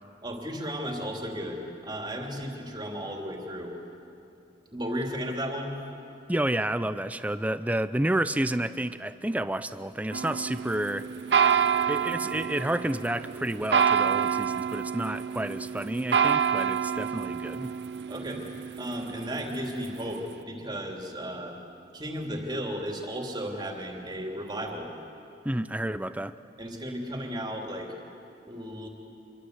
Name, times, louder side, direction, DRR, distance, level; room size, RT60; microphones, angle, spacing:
voice 1, 0.2-3.8 4.7-5.7 18.1-18.5 18.8-21.6 21.9-24.9 26.6-27.9 28.5-28.9, equal, 25° right, 1 dB, 2.9 m, -34 dB
voice 2, 6.3-11.1 11.9-17.7 25.4-26.4, right 1 dB, 10° right, 12 dB, 0.6 m, -30 dB
sound 1, 10.1-20.3, right 7 dB, 70° right, 0.5 m, -28 dB
26.0 x 23.5 x 8.1 m, 2.8 s
head